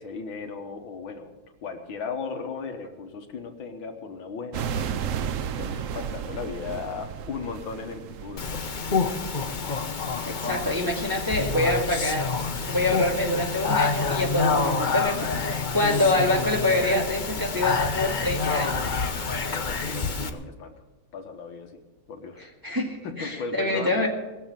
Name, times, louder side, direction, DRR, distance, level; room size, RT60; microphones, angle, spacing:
voice 1, 0.0-1.3 1.6-5.2 5.6-8.6 19.5-20.7 21.1-21.8 22.1-22.4 23.0-24.1, left 5 dB, 75° left, 5 dB, 2.0 m, -36 dB
sound 1, 4.5-9.8, right 8 dB, 90° right, 0.7 m, -33 dB
Speech, 8.4-20.3, left 4 dB, 45° left, 0.6 m, -27 dB
voice 2, 10.3-12.3 12.7-15.3 15.7-18.8 22.6-24.1, left 1 dB, 10° right, -2 dB, 2.0 m, -25 dB
20.0 x 7.1 x 7.5 m, 1.1 s
omnidirectional pair, 2.2 m